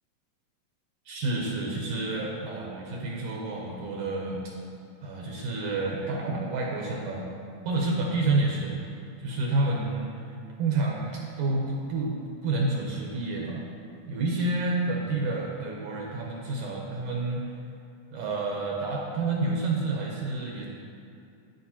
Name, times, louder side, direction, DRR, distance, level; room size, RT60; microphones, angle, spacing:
voice 1, 1.1-4.5 5.0-7.2 7.7-8.8 9.2-10.1 10.6-12.2 12.4-13.7 14.1-17.5 18.1-20.7, right 2 dB, 75° right, -2 dB, 2.1 m, -29 dB
9.8 x 9.0 x 2.9 m, 2.5 s
omnidirectional pair, 4.1 m